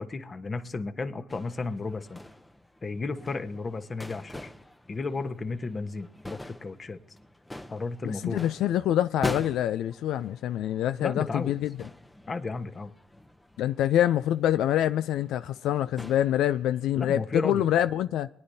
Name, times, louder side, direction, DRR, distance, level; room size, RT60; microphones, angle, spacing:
voice 1, 0.0-2.2 2.8-4.5 4.9-7.0 7.7-8.5 11.0-11.6 12.3-12.9 17.0-17.7, left 3 dB, 30° left, 1.1 m, -33 dB
sound 1, 1.3-16.9, left 1 dB, 10° left, 0.8 m, -44 dB
voice 2, 8.0-11.7 13.6-18.3, left 11 dB, 80° left, 0.4 m, -26 dB
23.0 x 9.8 x 2.7 m
cardioid pair, 85°, 0 cm